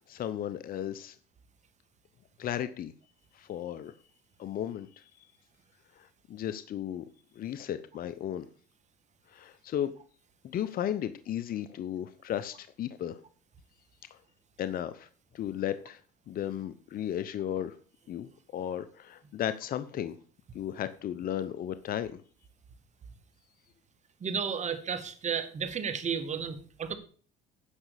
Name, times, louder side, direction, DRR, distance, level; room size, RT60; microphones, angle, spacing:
voice 1, 0.1-1.2 2.4-2.9 3.3-3.9 4.4-5.1 6.0-7.1 7.3-8.5 9.3-9.9 10.4-13.2 14.6-15.1 15.3-16.0 16.3-17.8 18.1-20.2 20.5-22.2, left 10 dB, 50° left, 13 dB, 0.8 m, -35 dB
voice 2, 24.2-27.0, right 6 dB, 40° right, 10 dB, 1.9 m, -33 dB
9.9 x 5.9 x 6.8 m, 0.42 s
supercardioid pair, 90°, 19 cm